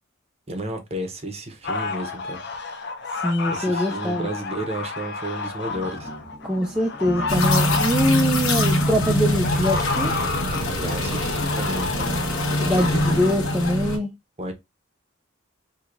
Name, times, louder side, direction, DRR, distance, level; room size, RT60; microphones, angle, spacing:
voice 1, 0.5-2.4 3.5-6.1 10.7-13.5 14.4-14.5, right 1 dB, 30° right, 0.7 m, -32 dB
sound 1, 1.6-13.7, left 4 dB, 55° left, 0.6 m, -31 dB
voice 2, 3.2-4.3 6.4-10.1 12.6-14.1, equal, 5° right, 0.3 m, -23 dB
sound 2, 5.7-11.3, right 1 dB, 15° left, 1.3 m, -38 dB
sound 3, 7.3-14.0, left 1 dB, 90° left, 1.2 m, -24 dB
4.5 x 2.7 x 2.5 m
head